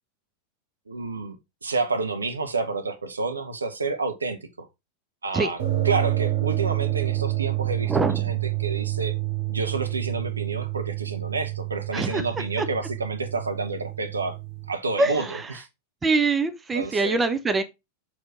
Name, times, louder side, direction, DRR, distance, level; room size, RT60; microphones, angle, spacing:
voice 1, 0.9-1.4 1.6-4.7 5.2-9.1 9.5-14.4 14.7-15.7 16.7-17.2, right 3 dB, 75° right, 0.9 m, -29 dB
sound 1, 5.6-14.7, right 17 dB, 60° right, 2.7 m, -28 dB
voice 2, 7.9-8.2 11.9-12.2 12.6-12.7 15.0-15.4 16.0-17.6, right 3 dB, 15° right, 0.7 m, -23 dB
6.5 x 4.4 x 3.8 m
figure-of-eight pair, 90°, 0 cm